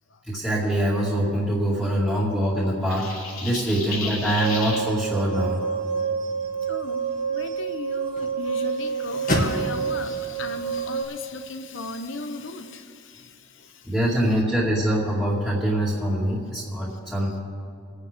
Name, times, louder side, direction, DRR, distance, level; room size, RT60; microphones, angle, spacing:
voice 1, 0.3-3.1 3.4-5.6 13.8-17.4, right 1 dB, ahead, -8 dB, 2.4 m, -24 dB
sound 1, 2.9-4.8, left 4 dB, 80° left, 3.7 m, -33 dB
sound 2, 4.3-11.0, right 6 dB, 75° right, 1.8 m, -28 dB
sound 3, 5.7-11.9, left 1 dB, 40° left, 2.1 m, -34 dB
voice 2, 6.7-13.3 13.6-14.1 17.2-17.4, left 2 dB, 65° left, 7 dB, 1.1 m, -37 dB
26.5 x 9.7 x 3.7 m, 2.5 s
head